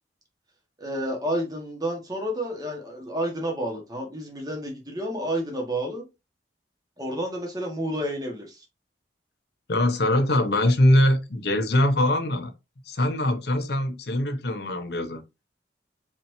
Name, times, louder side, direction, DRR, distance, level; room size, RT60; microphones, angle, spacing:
voice 1, 0.8-6.1 7.0-8.6, right 1 dB, 20° right, 1.4 m, -30 dB
voice 2, 9.7-12.5 12.9-15.2, left 1 dB, 60° left, 0.9 m, -22 dB
4.6 x 4.3 x 2.7 m
head